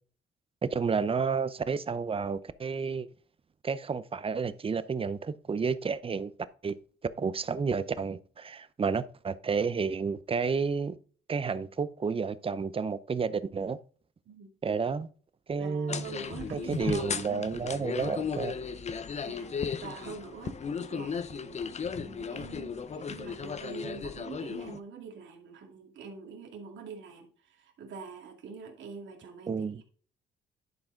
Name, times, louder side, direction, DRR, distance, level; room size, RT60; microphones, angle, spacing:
voice 1, 0.6-3.1 3.6-6.3 6.6-6.8 7.2-11.0 11.3-13.8 14.6-15.1 15.5-16.1 16.5-18.6 29.5-29.8, right 5 dB, 30° right, 0.6 m, -31 dB
voice 2, 15.6-17.1 19.2-21.6 22.0-29.8, right 5 dB, 70° right, 2.4 m, -45 dB
sound 1, 15.9-24.8, left 6 dB, 35° left, 0.7 m, -35 dB
11.0 x 4.8 x 3.8 m
cardioid pair, 90°, 20 cm